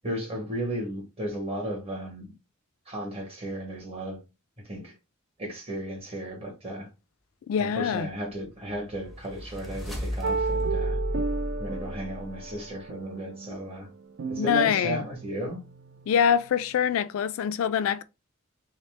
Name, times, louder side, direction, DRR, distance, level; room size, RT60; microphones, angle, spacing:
voice 1, 0.0-2.3 2.9-4.2 4.6-4.9 5.4-6.9 7.6-11.0 11.6-13.9 14.3-15.6, right 1 dB, 30° right, 1.1 m, -34 dB
voice 2, 7.5-8.1 14.4-15.0 16.1-18.0, left 8 dB, 70° left, 0.3 m, -24 dB
sound 1, 8.6-12.6, equal, ahead, 0.6 m, -33 dB
sound 2, 10.2-16.9, right 4 dB, 65° right, 0.4 m, -34 dB
2.8 x 2.0 x 3.1 m
head